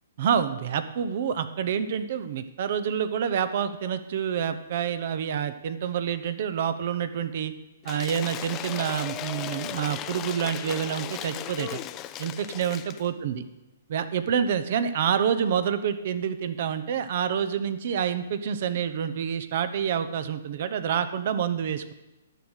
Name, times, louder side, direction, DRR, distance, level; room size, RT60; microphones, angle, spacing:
voice 1, 0.2-7.5 7.8-11.8 12.2-13.4 13.9-21.9, right 8 dB, 55° right, 11 dB, 0.8 m, -28 dB
Cheering / Applause / Crowd, 7.8-13.1, left 12 dB, 25° left, 0.5 m, -36 dB
11.0 x 6.6 x 6.2 m, 1.0 s
hypercardioid pair, 135°, 0 cm